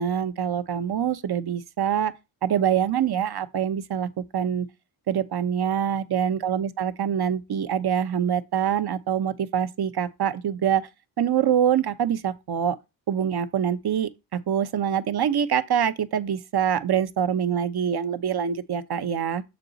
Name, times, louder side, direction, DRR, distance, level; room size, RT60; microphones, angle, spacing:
voice 1, 0.0-2.1 2.4-4.7 5.1-10.9 11.2-12.8 13.1-19.4, right 9 dB, 50° right, 0.9 m, -25 dB
6.9 x 4.5 x 4.0 m
supercardioid pair, 50°, 50 cm